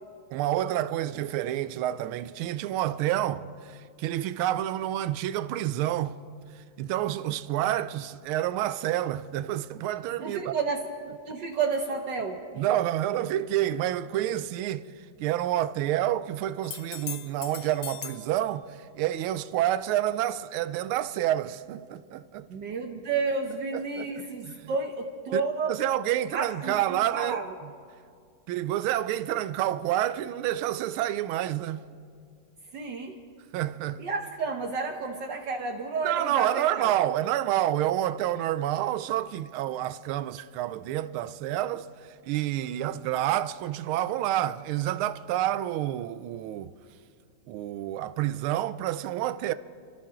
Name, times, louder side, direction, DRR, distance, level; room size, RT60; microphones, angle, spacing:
voice 1, 0.3-6.2 6.8-10.5 12.5-14.9 15.2-22.5 23.7-24.1 24.4-24.7 25.3-25.4 25.7-27.4 28.5-31.8 33.5-34.0 36.0-46.7 47.5-49.5, right 13 dB, 85° right, 1.4 m, -28 dB
voice 2, 10.2-10.8 11.3-12.4 22.5-25.7 26.3-27.6 32.7-33.2 34.0-36.9, right 4 dB, 60° right, 1.5 m, -31 dB
sound 1, 16.6-18.3 22.0-22.1, left 9 dB, 60° left, 1.0 m, -39 dB
29.0 x 13.0 x 3.7 m
omnidirectional pair, 2.3 m